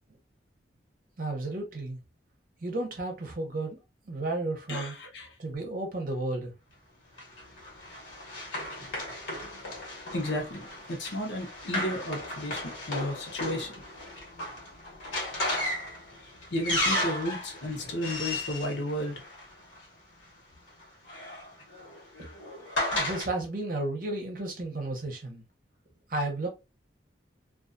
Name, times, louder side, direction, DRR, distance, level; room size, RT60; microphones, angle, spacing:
voice 1, 1.2-2.0 2.6-3.8 4.1-4.9 5.4-6.5 22.2-22.3 22.9-25.4 26.1-26.5, right 2 dB, 50° right, 0.8 m, -33 dB
voice 2, 4.7-5.3 10.1-13.8 16.5-19.2, left 1 dB, 75° left, 0.8 m, -33 dB
Run, 7.2-19.8 20.8-23.3, left 1 dB, 90° left, 1.1 m, -35 dB
2.5 x 2.3 x 2.5 m
head